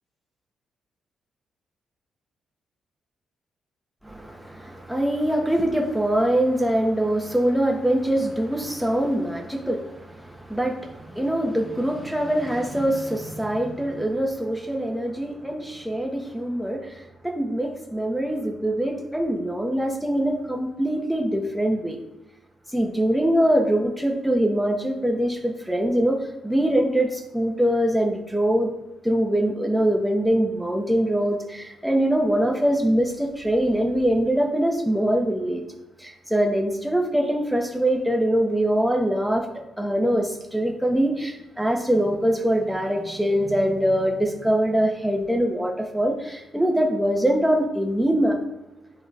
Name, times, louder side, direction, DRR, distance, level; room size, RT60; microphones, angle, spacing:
voice 1, 4.0-22.0 22.7-28.7 29.0-35.6 36.0-48.4, right 1 dB, ahead, 1 dB, 1.3 m, -23 dB
10.5 x 3.8 x 2.6 m, 1.0 s
hypercardioid pair, 45°, 0 cm